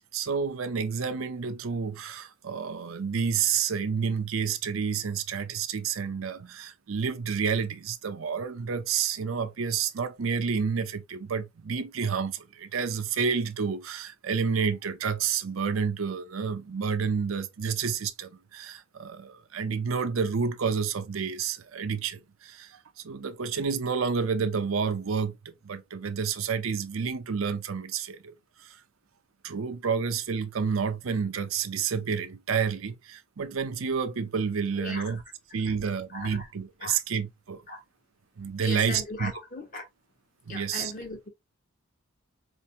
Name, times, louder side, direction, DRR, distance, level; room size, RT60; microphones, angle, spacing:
voice 1, 0.1-28.3 28.6-28.8 29.4-35.2 35.5-37.6 38.4-39.3 40.5-40.9, right 6 dB, 85° right, 0.6 m, -29 dB
voice 2, 34.8-35.2 35.6-35.7 36.1-36.5 36.8-37.0 37.7-37.8 38.6-39.8 40.5-41.3, left 2 dB, 40° left, 1.1 m, -38 dB
4.4 x 2.6 x 2.7 m
head